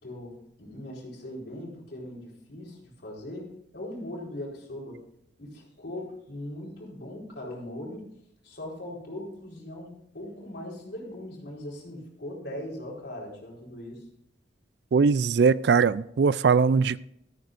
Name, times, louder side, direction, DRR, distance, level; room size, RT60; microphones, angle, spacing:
voice 1, 0.0-5.0 5.4-8.1 8.4-14.0, left 1 dB, 60° left, 4.3 m, -40 dB
voice 2, 14.9-17.0, right 5 dB, 60° right, 0.4 m, -21 dB
14.0 x 13.5 x 2.6 m
head